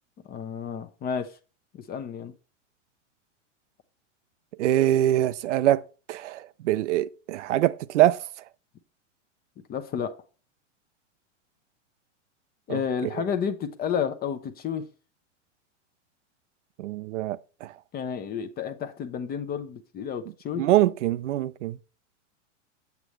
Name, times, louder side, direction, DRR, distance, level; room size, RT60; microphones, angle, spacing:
voice 1, 0.2-1.3 1.7-2.3 9.7-10.1 12.7-14.9 17.9-20.6, left 7 dB, 25° left, 0.7 m, -31 dB
voice 2, 4.6-5.8 6.1-8.3 12.7-12.8 16.8-17.7 20.6-21.8, right 13 dB, 75° right, 0.6 m, -24 dB
8.2 x 7.1 x 3.1 m
hypercardioid pair, 115°, 37 cm